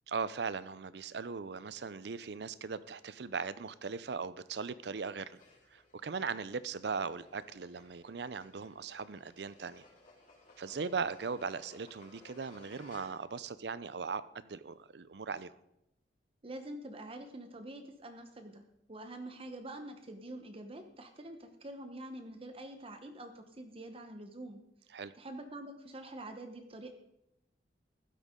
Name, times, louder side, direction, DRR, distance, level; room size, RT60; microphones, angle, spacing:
voice 1, 0.1-5.4 5.7-9.9 10.6-15.6 24.9-25.1, right 5 dB, 65° right, 16 dB, 0.5 m, -39 dB
sound 1, 5.3-13.4, left 2 dB, 45° left, 4.0 m, -60 dB
voice 2, 16.4-18.6 18.9-24.6 25.1-26.9, right 1 dB, 30° right, 6 dB, 0.9 m, -46 dB
15.5 x 12.5 x 3.7 m, 0.86 s
head